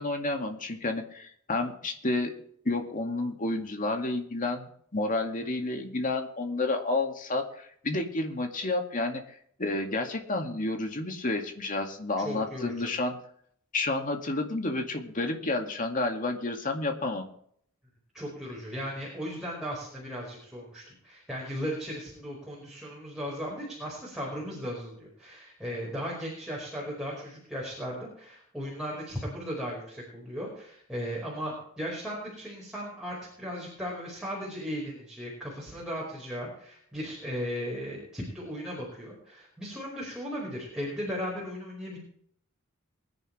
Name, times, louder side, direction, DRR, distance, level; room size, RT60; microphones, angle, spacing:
voice 1, 0.0-2.3 2.6-9.2 9.6-13.2 13.7-17.3, left 2 dB, 40° left, 4 dB, 2.3 m, -30 dB
voice 2, 12.2-12.9 18.1-42.0, equal, 5° right, -5 dB, 5.0 m, -36 dB
22.5 x 10.5 x 3.4 m, 0.64 s
head